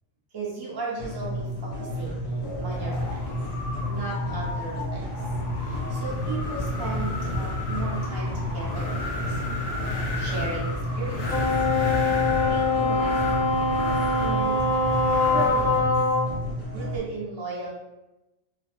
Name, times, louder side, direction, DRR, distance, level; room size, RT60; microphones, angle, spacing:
voice 1, 0.3-2.2 2.6-3.2 3.8-5.2 5.6-9.4 10.1-10.7 11.0-11.4 12.3-13.9 14.2-14.6 15.3-15.8 16.7-17.7, right 3 dB, 35° right, -6 dB, 0.4 m, -35 dB
sound 1, 1.0-17.0, equal, 35° left, 0.7 m, -32 dB
Wind, 2.4-16.0, left 2 dB, 85° left, 0.3 m, -33 dB
Wind instrument woodwind instrument, 11.3-16.3, left 3 dB, 65° left, 0.9 m, -23 dB
3.1 x 2.0 x 2.9 m, 1.0 s
omnidirectional pair, 1.3 m